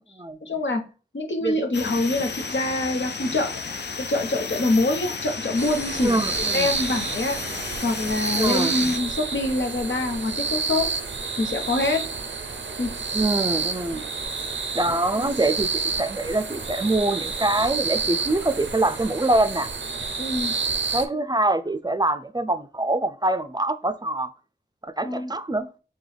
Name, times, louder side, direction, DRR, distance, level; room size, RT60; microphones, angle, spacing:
voice 1, 0.4-0.8 1.1-3.5 4.1-6.2 6.5-7.6 7.8-10.9 11.4-12.0 12.8-12.9 15.1-15.3 20.2-20.5 25.0-25.3, left 2 dB, 85° left, 0.9 m, -25 dB
sound 1, 1.7-9.0, left 4 dB, 65° left, 0.5 m, -33 dB
sound 2, 5.6-21.1, right 4 dB, 85° right, 0.5 m, -29 dB
voice 2, 6.0-6.7 8.3-8.8 13.1-14.0 14.7-19.7 20.9-24.3 24.8-25.7, right 2 dB, 20° right, 0.4 m, -24 dB
6.0 x 2.3 x 3.3 m
wide cardioid pair, 65°, 19 cm